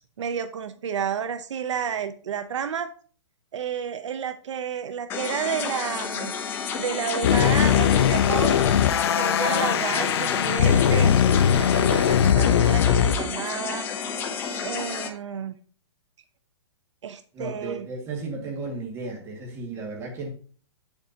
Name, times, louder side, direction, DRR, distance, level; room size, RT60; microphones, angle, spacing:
voice 1, 0.2-2.9 3.5-6.3 6.7-8.6 9.1-13.9 14.6-15.6 17.0-17.9, right 7 dB, 75° right, 0.7 m, -31 dB
sound 1, 5.1-15.1, left 6 dB, 15° left, 0.7 m, -31 dB
sound 2, 7.2-13.2, left 9 dB, 55° left, 0.5 m, -20 dB
voice 2, 17.3-20.3, right 3 dB, 15° right, 2.0 m, -34 dB
8.0 x 6.8 x 2.8 m
hypercardioid pair, 160°, 15 cm